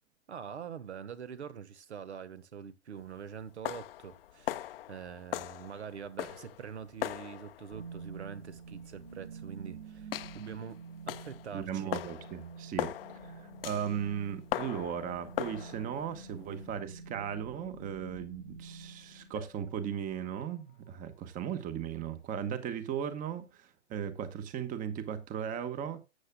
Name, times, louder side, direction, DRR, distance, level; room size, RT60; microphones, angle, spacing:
voice 1, 0.3-10.8 11.1-12.0, right 7 dB, 70° right, 1.3 m, -44 dB
sound 1, 3.0-16.8, left 13 dB, 55° left, 0.8 m, -40 dB
sound 2, 7.7-19.7, right 4 dB, 55° right, 3.6 m, -48 dB
voice 2, 11.5-12.9 13.2-26.0, right 8 dB, 25° right, 1.2 m, -37 dB
sound 3, 19.4-23.0 23.6-23.7 23.9-24.0, left 8 dB, 30° left, 1.0 m, -57 dB
13.0 x 8.3 x 2.2 m
hypercardioid pair, 120°, 35 cm